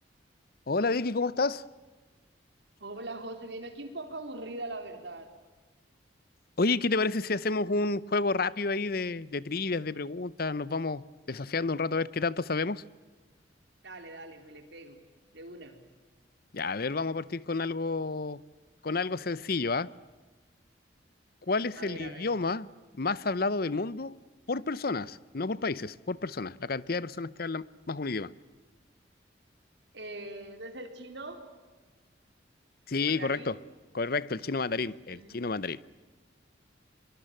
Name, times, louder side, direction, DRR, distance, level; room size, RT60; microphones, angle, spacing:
voice 1, 0.7-1.6 6.6-12.8 16.5-18.4 18.8-19.9 21.5-22.7 23.0-24.2 24.5-28.3 32.9-33.6 33.9-35.8, left 3 dB, 50° left, 0.8 m, -30 dB
voice 2, 2.8-5.3 13.8-15.0 15.3-15.8 21.8-22.3 29.9-31.4 33.0-33.6 35.1-35.3, right 2 dB, 65° right, 4.1 m, -41 dB
24.0 x 23.5 x 9.0 m
head